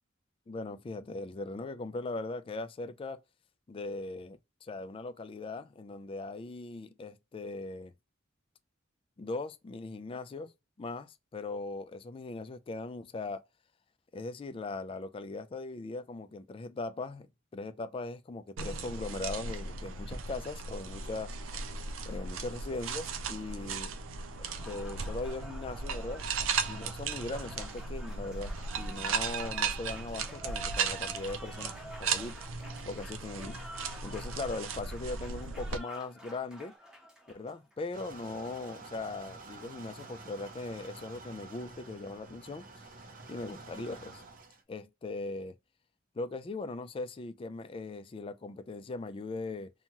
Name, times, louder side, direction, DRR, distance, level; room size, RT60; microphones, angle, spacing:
voice 1, 0.5-3.2 3.7-7.9 9.2-10.5 10.8-13.4 14.1-21.3 22.1-23.9 24.6-26.3 26.7-32.4 32.9-33.6 34.0-36.7 37.3-42.7 43.3-44.2 44.7-45.5 46.1-49.7, left 3 dB, 30° left, 0.3 m, -39 dB
sound 1, 18.6-35.8, right 5 dB, 85° right, 0.5 m, -36 dB
Applause, 24.3-38.0, equal, 5° right, 0.8 m, -49 dB
sound 2, 37.9-44.6, right 3 dB, 45° right, 0.6 m, -49 dB
2.9 x 2.2 x 2.8 m
head